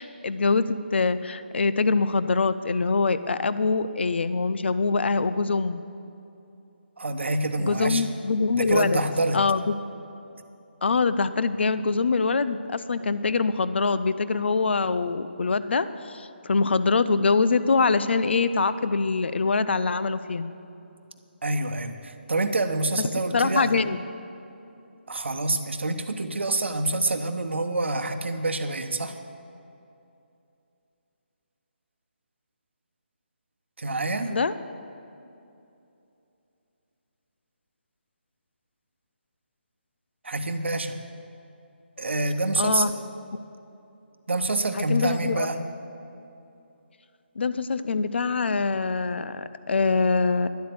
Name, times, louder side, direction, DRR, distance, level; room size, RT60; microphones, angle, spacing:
voice 1, 0.0-5.8 7.6-9.0 9.3-9.8 10.8-20.5 23.3-24.0 34.3-34.5 42.6-42.9 44.7-45.5 47.4-50.5, left 4 dB, 70° left, 14 dB, 0.6 m, -24 dB
voice 2, 7.0-8.1 8.5-9.4 21.4-23.8 25.1-29.2 33.8-34.3 40.2-41.0 42.0-42.9 44.3-45.6, right 2 dB, 80° right, 7 dB, 1.0 m, -27 dB
11.5 x 8.1 x 7.9 m, 2.8 s
figure-of-eight pair, 160°, 6 cm